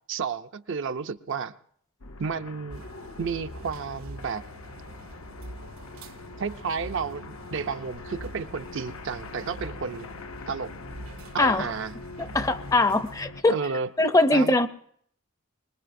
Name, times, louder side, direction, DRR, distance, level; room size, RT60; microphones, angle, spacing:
voice 1, 0.1-1.5 2.2-2.8 3.2-4.4 6.4-10.1 10.5-10.7 11.3-11.9 13.5-13.9 14.3-14.7, right 5 dB, 60° right, 9 dB, 0.5 m, -32 dB
sound 1, 2.0-13.4, left 3 dB, 80° left, 0.8 m, -43 dB
sound 2, 2.7-13.2, right 1 dB, 85° right, 1.2 m, -45 dB
voice 2, 12.3-13.6 14.0-14.7, left 2 dB, 15° left, 11 dB, 0.5 m, -21 dB
24.0 x 20.5 x 2.6 m, 0.64 s
head